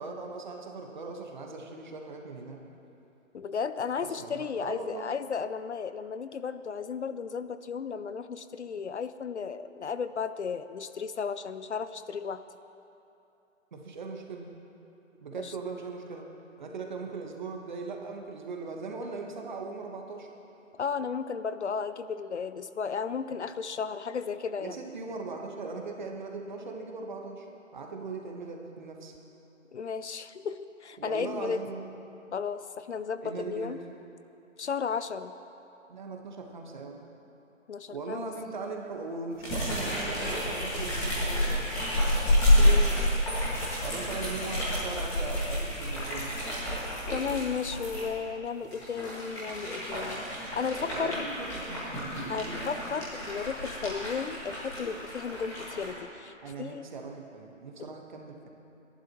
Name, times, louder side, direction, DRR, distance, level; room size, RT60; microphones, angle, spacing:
voice 1, 0.0-2.6 4.0-5.1 13.7-14.5 15.2-16.3 16.6-20.3 24.6-27.5 27.7-29.1 31.0-31.8 33.2-33.8 35.9-37.1 37.9-41.9 43.8-46.3 50.9-51.8 52.4-52.6 56.4-58.5, right 4 dB, 35° right, 2 dB, 1.4 m, -39 dB
voice 2, 3.3-12.4 15.4-15.5 20.8-24.7 29.7-31.6 32.3-33.8 34.6-35.3 37.7-38.3 42.6-43.2 47.1-51.2 52.3-56.9 57.8-57.9, left 6 dB, 60° left, 12 dB, 0.6 m, -34 dB
sound 1, 39.4-48.0 48.6-55.9, left 1 dB, 10° left, 1.9 m, -29 dB
27.5 x 11.5 x 3.1 m, 3.0 s
hypercardioid pair, 165°, 39 cm